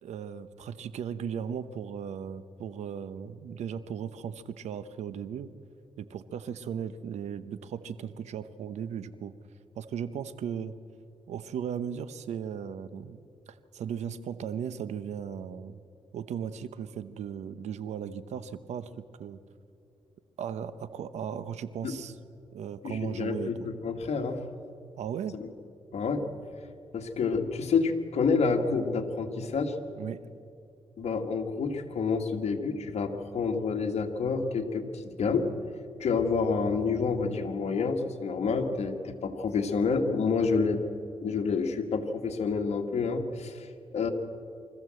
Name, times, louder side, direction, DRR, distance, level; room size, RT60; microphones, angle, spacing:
voice 1, 0.0-5.5 6.0-9.3 9.8-10.8 11.3-13.2 13.5-15.8 16.1-18.9 19.2-19.4 20.4-22.2 22.5-23.7 25.0-25.4 30.0-30.2, right 8 dB, 90° right, 13 dB, 0.9 m, -36 dB
voice 2, 22.8-24.4 25.3-25.5 25.9-26.3 26.9-29.8 31.0-35.5 36.0-40.8 41.2-44.1, left 4 dB, 70° left, 4 dB, 1.8 m, -28 dB
24.0 x 14.5 x 7.7 m, 2.5 s
cardioid pair, 80°, 11 cm